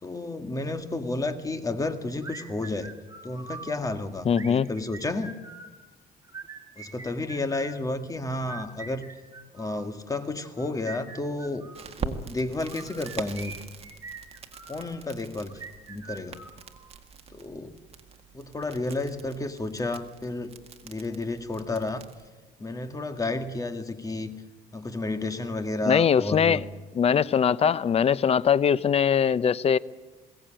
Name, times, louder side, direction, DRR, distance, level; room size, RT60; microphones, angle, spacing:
voice 1, 0.0-2.9 3.2-5.3 6.8-9.1 9.5-11.7 12.0-13.6 14.7-15.6 15.9-16.4 17.3-17.8 18.3-20.5 20.8-22.0 22.6-24.3 24.7-26.6, left 2 dB, 20° left, 1.9 m, -31 dB
sound 1, 2.2-3.7 4.3-5.7 6.2-7.8 8.3-9.9 10.4-11.9 12.6-14.9 15.5-17.0, right 4 dB, 20° right, 3.9 m, -44 dB
voice 2, 4.2-4.7 25.9-26.6 26.9-29.8, left 7 dB, 35° left, 0.6 m, -21 dB
Crackle, 11.7-22.3, right 5 dB, 35° right, 1.9 m, -42 dB
21.5 x 17.5 x 9.0 m
cardioid pair, 110°, 17 cm